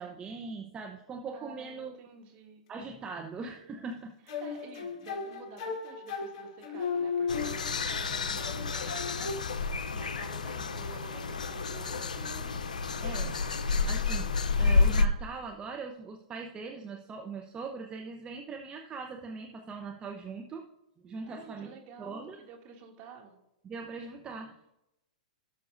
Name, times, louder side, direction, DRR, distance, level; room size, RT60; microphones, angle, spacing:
voice 1, 0.0-2.0 2.7-4.1 13.0-13.4 13.7-20.6 21.0-21.7 22.0-22.4 23.6-24.7, right 4 dB, 20° right, 2 dB, 0.9 m, -41 dB
voice 2, 1.3-2.6 3.0-3.2 4.4-13.1 21.2-23.4, right 6 dB, 40° right, 1 dB, 2.5 m, -50 dB
sound 1, 4.3-8.0 8.4-9.4, left 5 dB, 45° left, 2.1 m, -35 dB
sound 2, 7.3-15.1, left 4 dB, 80° left, 0.7 m, -30 dB
17.5 x 6.4 x 2.7 m, 0.89 s
hypercardioid pair, 115°, 4 cm